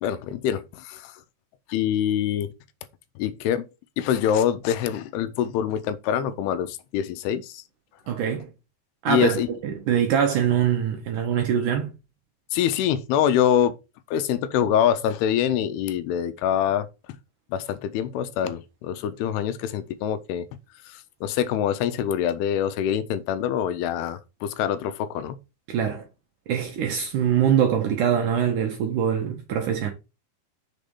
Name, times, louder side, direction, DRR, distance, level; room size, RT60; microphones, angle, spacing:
voice 1, 0.0-1.1 1.7-2.5 3.2-3.7 4.0-7.6 9.1-9.5 12.5-13.8 14.1-16.9 17.5-20.5 20.9-25.4, left 9 dB, 80° left, 2.5 m, -25 dB
voice 2, 8.1-8.5 9.0-11.9 25.7-26.0 26.5-29.9, right 8 dB, 80° right, 1.8 m, -23 dB
6.7 x 4.2 x 5.2 m
omnidirectional pair, 5.1 m